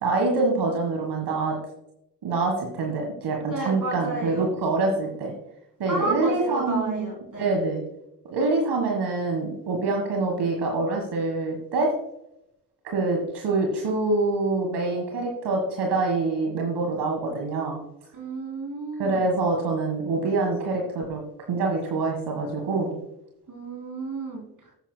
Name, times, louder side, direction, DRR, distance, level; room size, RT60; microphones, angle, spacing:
voice 1, 0.0-1.6 2.2-5.3 5.8-7.1 7.4-7.8 8.3-11.9 12.8-17.8 19.0-21.2 21.5-22.9, right 3 dB, 70° right, 2 dB, 1.6 m, -25 dB
voice 2, 3.5-4.5 5.9-7.6 18.1-19.3 23.5-24.4, right 2 dB, 50° right, -1 dB, 3.2 m, -32 dB
14.5 x 8.1 x 2.2 m, 0.82 s
hypercardioid pair, 40°, 42 cm